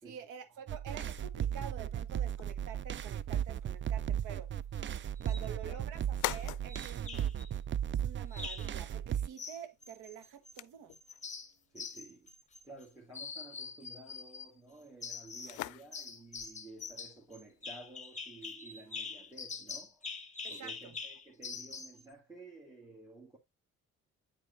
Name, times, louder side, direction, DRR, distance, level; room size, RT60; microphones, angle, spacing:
voice 1, 0.0-4.5 5.2-7.4 7.9-11.0 20.4-21.0, right 8 dB, 90° right, 1.2 m, -48 dB
sound 1, 0.7-9.3, right 10 dB, 40° right, 0.4 m, -36 dB
sound 2, 1.2-19.6, left 17 dB, 80° left, 0.5 m, -48 dB
sound 3, 5.2-5.5 6.7-7.5 8.3-8.8 9.4-10.6 10.9-12.9 13.1-14.5 15.0-15.6 15.9-22.0, left 4 dB, 25° left, 1.1 m, -44 dB
voice 2, 5.3-6.0 11.7-12.3 12.6-20.1 20.5-23.4, right 2 dB, 10° right, 2.2 m, -53 dB
9.3 x 4.7 x 2.6 m
cardioid pair, 90°, 30 cm